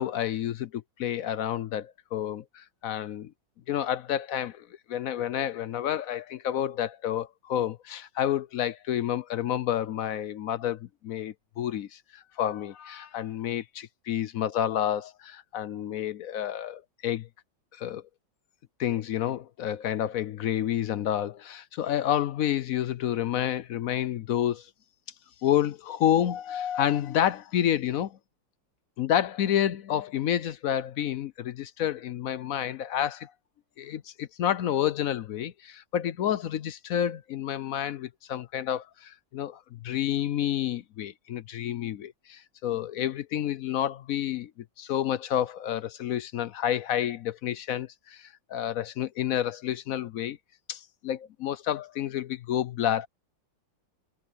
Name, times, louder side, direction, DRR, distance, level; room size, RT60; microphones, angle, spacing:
voice 1, 0.0-3.3 3.7-17.3 17.7-18.0 18.8-24.7 25.4-28.2 29.0-33.3 33.8-44.5 44.8-50.4 50.7-53.1, left 10 dB, 65° left, 0.8 m, -29 dB
omnidirectional pair, 2.0 m